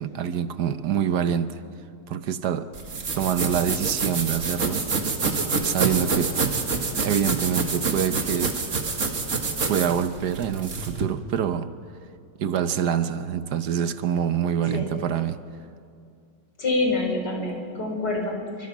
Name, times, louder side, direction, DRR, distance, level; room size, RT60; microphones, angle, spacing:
voice 1, 0.0-1.6 2.1-2.7 3.1-4.9 5.6-6.4 7.0-8.6 9.7-11.7 12.4-15.4, right 9 dB, 70° right, 1.4 m, -26 dB
sound 1, 2.7-11.0, right 4 dB, 45° right, 2.1 m, -27 dB
voice 2, 16.6-18.7, left 2 dB, 70° left, 4.8 m, -26 dB
26.5 x 25.0 x 6.1 m
omnidirectional pair, 1.9 m